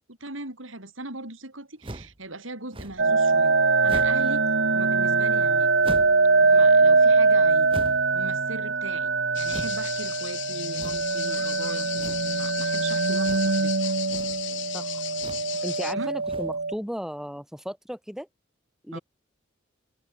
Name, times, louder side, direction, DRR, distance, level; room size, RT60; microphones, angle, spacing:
voice 1, 0.1-4.4 4.7-5.7 6.4-7.7 8.1-13.7 15.8-16.1 18.9-19.0, right 2 dB, 90° right, 7.6 m, -39 dB
sound 1, 1.8-2.2 2.7-3.1 3.8-4.3 5.8-6.3 7.7-8.2 9.5-9.8 10.7-11.2 12.0-12.3 13.2-13.6 14.0-14.4 15.1-15.5 16.2-16.6, right 1 dB, 25° right, 2.3 m, -39 dB
sound 2, 3.0-16.7, right 4 dB, 65° right, 1.3 m, -22 dB
sound 3, 9.3-15.9, left 13 dB, 70° left, 7.2 m, -36 dB
voice 2, 15.6-18.3 18.8-19.0, equal, ahead, 7.5 m, -35 dB
head